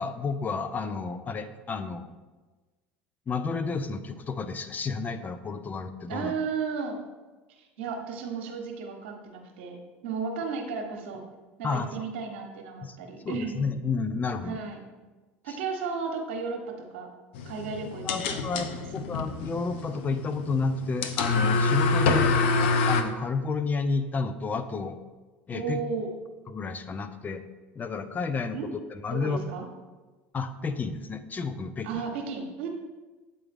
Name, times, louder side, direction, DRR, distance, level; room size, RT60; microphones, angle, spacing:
voice 1, 0.0-2.1 3.3-6.3 11.6-12.0 12.8-13.0 13.2-14.6 15.5-15.6 18.0-22.3 22.8-25.0 25.5-25.8 26.5-27.4 27.7-28.6 28.9-29.4 30.3-32.0, left 4 dB, 30° left, 10 dB, 0.5 m, -31 dB
voice 2, 6.1-7.0 7.5-11.2 11.6-13.6 14.4-14.8 15.4-17.1 17.4-18.2 18.5-18.8 25.5-26.1 28.5-28.7 29.1-29.7 31.8-32.7, right 5 dB, 75° right, 3 dB, 0.9 m, -34 dB
sound 1, 17.3-23.0, left 4 dB, 75° left, 0.5 m, -26 dB
8.2 x 3.8 x 3.4 m, 1.3 s
hypercardioid pair, 85°, 6 cm